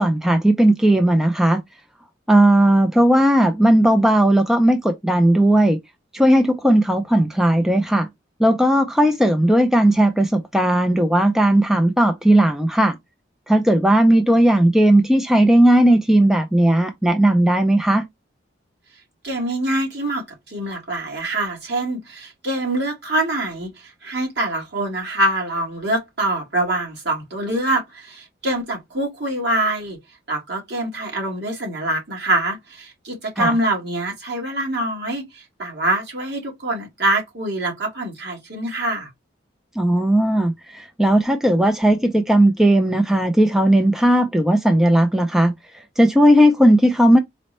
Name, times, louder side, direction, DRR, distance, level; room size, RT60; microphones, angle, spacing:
voice 1, 0.0-1.6 2.3-5.8 6.1-8.1 8.4-13.0 13.5-18.1 33.4-33.5 39.8-45.5 46.0-47.2, right 1 dB, 5° right, 0.3 m, -16 dB
voice 2, 19.2-30.0 30.3-39.1, right 1 dB, 60° right, 1.7 m, -24 dB
4.2 x 2.1 x 4.1 m
head